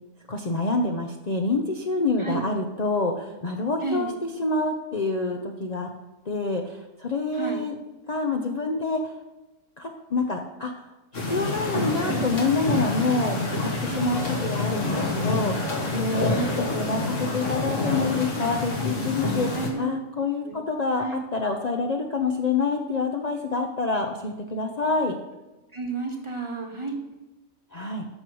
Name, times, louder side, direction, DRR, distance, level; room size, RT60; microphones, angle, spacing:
voice 1, 0.3-4.1 4.4-5.9 6.3-7.7 8.1-9.0 9.8-10.7 11.3-19.5 19.8-25.1 27.7-28.1, left 3 dB, 40° left, 2 dB, 0.7 m, -27 dB
voice 2, 3.8-4.1 7.3-7.7 13.9-14.2 16.3-16.6 19.5-20.0 20.4-20.6 21.0-21.2 25.7-27.0, right 4 dB, 25° right, 2 dB, 1.3 m, -31 dB
sound 1, 11.1-19.7, left 2 dB, 65° left, 2.1 m, -27 dB
13.0 x 4.7 x 6.3 m, 1.0 s
omnidirectional pair, 1.4 m